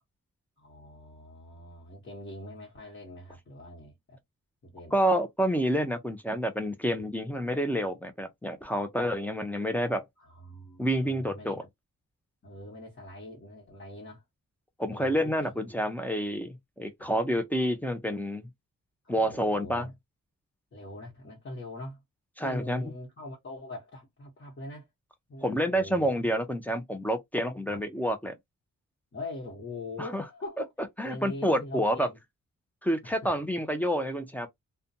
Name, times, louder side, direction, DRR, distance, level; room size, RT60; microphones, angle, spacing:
voice 1, 0.6-4.2 4.6-5.0 10.2-11.7 12.4-14.2 14.9-15.8 17.0-17.1 19.0-19.9 20.7-22.0 22.4-24.9 25.3-26.1 27.7-27.8 29.1-30.7 31.0-32.2 33.1-33.3, left 2 dB, 40° left, 1.2 m, -43 dB
voice 2, 4.9-10.0 10.8-11.6 14.8-18.5 19.1-19.9 22.4-22.8 25.4-28.3 30.0-30.2 31.0-32.1 32.8-34.5, equal, 5° left, 0.4 m, -28 dB
2.5 x 2.2 x 2.7 m
wide cardioid pair, 165°, 32 cm